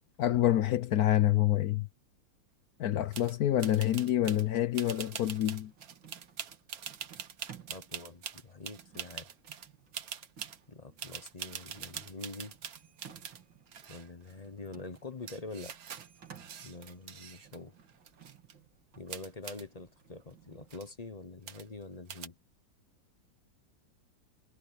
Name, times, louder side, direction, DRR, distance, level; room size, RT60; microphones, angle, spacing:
voice 1, 0.2-1.9 2.8-5.7, left 13 dB, 65° left, 1.0 m, -27 dB
sound 1, 3.1-3.3 3.6-4.4 4.7-9.7 9.9-10.6 11.0-13.4 13.7-14.3 14.9-15.0 15.3-17.6 17.9-18.5 19.1-19.6 20.3-20.4 20.6-20.9 21.5-21.8 22.1-22.3, right 8 dB, 55° right, 1.5 m, -44 dB
sound 2, 4.1-20.7, right 8 dB, 75° right, 3.0 m, -58 dB
voice 2, 7.7-9.3 10.7-12.6 13.9-15.8 16.6-17.7 19.0-22.4, left 3 dB, 30° left, 0.8 m, -45 dB
omnidirectional pair, 2.1 m